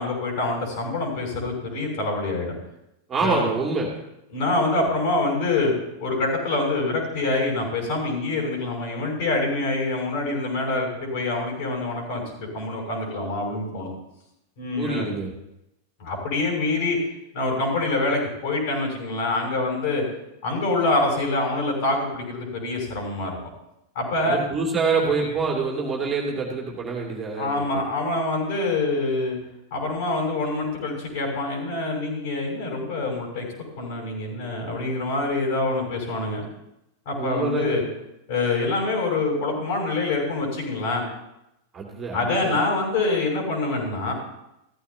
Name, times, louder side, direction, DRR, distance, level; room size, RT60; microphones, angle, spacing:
voice 1, 0.0-2.5 3.2-3.5 4.3-5.7 6.0-13.9 14.6-15.1 16.0-17.0 17.3-20.0 20.4-23.4 23.9-24.4 27.4-29.4 29.7-33.5 33.8-36.4 37.0-37.8 38.3-41.0 42.1-44.1, left 2 dB, 50° left, 0 dB, 6.3 m, -25 dB
voice 2, 3.1-3.9 14.8-15.3 24.2-27.8 37.2-37.8 41.7-42.6, right 4 dB, 20° right, -2 dB, 2.8 m, -26 dB
16.0 x 14.5 x 2.9 m, 0.86 s
figure-of-eight pair, 90°, 0 cm